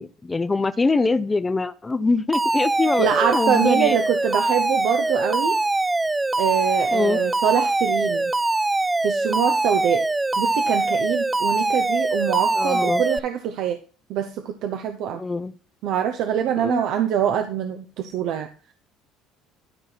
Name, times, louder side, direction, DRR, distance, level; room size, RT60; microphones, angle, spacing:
voice 1, 0.0-3.9 6.9-7.2 12.5-13.0 15.1-15.5 16.6-16.8, left 3 dB, 20° left, 14 dB, 0.7 m, -23 dB
Alarm, 2.3-13.2, right 2 dB, 15° right, 0.4 m, -23 dB
voice 2, 3.0-5.6 6.4-8.3 9.0-10.0 10.4-13.8 14.1-15.2 15.8-18.5, right 9 dB, 65° right, 5 dB, 0.8 m, -24 dB
12.0 x 4.4 x 4.1 m, 0.37 s
supercardioid pair, 85°, 0 cm